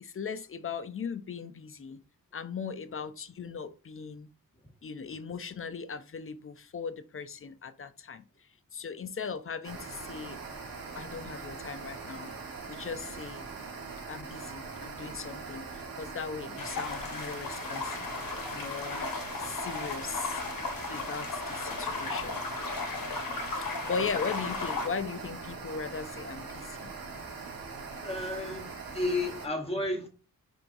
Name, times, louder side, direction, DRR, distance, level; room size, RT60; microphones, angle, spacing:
voice 1, 0.0-2.0 2.3-4.3 4.8-8.2 8.7-10.4 10.9-12.3 12.7-13.5 14.1-19.1 19.4-20.4 20.9-22.4 22.8-22.9 23.6-26.9, left 5 dB, 40° left, 0.4 m, -38 dB
sound 1, 9.6-29.5, right 4 dB, 70° right, 1.2 m, -42 dB
sound 2, 16.6-24.9, left 4 dB, 70° left, 0.9 m, -36 dB
voice 2, 28.0-30.1, left 2 dB, 15° left, 1.1 m, -33 dB
4.6 x 3.5 x 2.6 m
wide cardioid pair, 85°, 36 cm